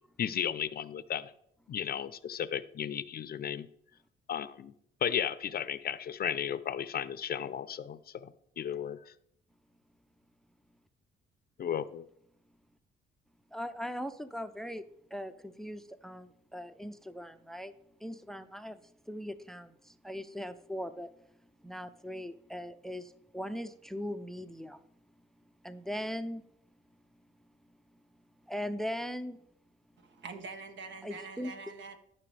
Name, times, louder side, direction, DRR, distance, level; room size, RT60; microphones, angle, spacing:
voice 1, 0.2-1.3 1.7-3.7 4.3-4.7 5.0-9.0 11.6-12.1, left 9 dB, 50° left, 15 dB, 0.6 m, -34 dB
voice 2, 13.5-14.8 15.1-17.7 18.0-18.8 19.1-21.1 21.6-24.8 25.6-26.4 28.5-29.4 31.0-31.5, equal, ahead, 12 dB, 0.6 m, -39 dB
voice 3, 30.0-32.0, right 4 dB, 70° right, 6 dB, 1.5 m, -45 dB
13.5 x 5.9 x 3.4 m, 0.73 s
cardioid pair, 90°, 20 cm